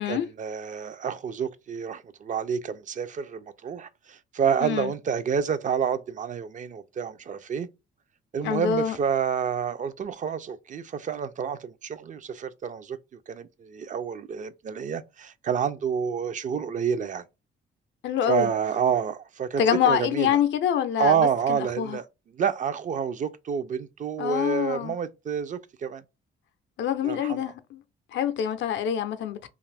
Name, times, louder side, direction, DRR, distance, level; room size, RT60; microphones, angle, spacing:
voice 1, 0.0-7.7 8.3-13.0 13.3-17.2 18.3-20.4 21.0-22.0 22.4-26.0 27.0-27.5, right 7 dB, 40° right, 0.4 m, -28 dB
voice 2, 4.6-4.9 8.4-9.0 18.0-18.5 19.6-22.0 24.2-24.9 26.8-27.8 28.1-29.5, left 9 dB, 70° left, 0.5 m, -26 dB
2.6 x 2.4 x 3.2 m
cardioid pair, 90°, 20 cm